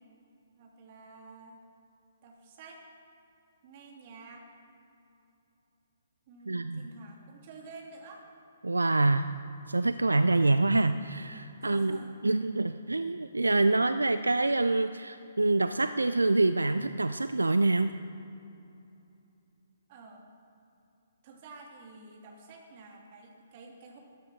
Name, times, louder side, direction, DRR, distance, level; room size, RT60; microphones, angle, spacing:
voice 1, 0.6-1.6 2.2-2.8 3.6-4.5 6.3-8.3 11.6-12.1 19.9-20.3 21.2-24.0, right 3 dB, 40° right, 0 dB, 2.7 m, -49 dB
voice 2, 6.5-6.9 8.6-9.3 9.7-12.0 12.2-17.9, right 2 dB, 80° right, 11 dB, 0.4 m, -26 dB
14.0 x 10.0 x 6.2 m, 2.8 s
figure-of-eight pair, 125°, 0 cm